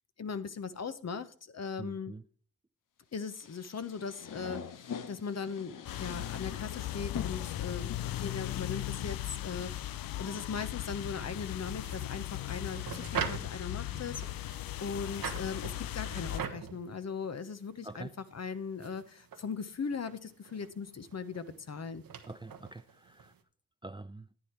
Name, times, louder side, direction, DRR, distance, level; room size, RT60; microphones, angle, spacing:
voice 1, 0.2-2.1 3.1-22.0, left 5 dB, 50° left, 1.1 m, -39 dB
voice 2, 1.8-2.2 17.8-18.1 22.2-23.3 23.8-24.3, right 2 dB, 15° right, 0.5 m, -45 dB
sound 1, 3.3-9.4, left 7 dB, 65° left, 1.0 m, -45 dB
sound 2, 5.9-16.4, left 14 dB, 85° left, 0.5 m, -38 dB
sound 3, 11.8-23.4, right 7 dB, 75° right, 1.3 m, -43 dB
10.0 x 9.5 x 4.5 m
cardioid pair, 50°, 34 cm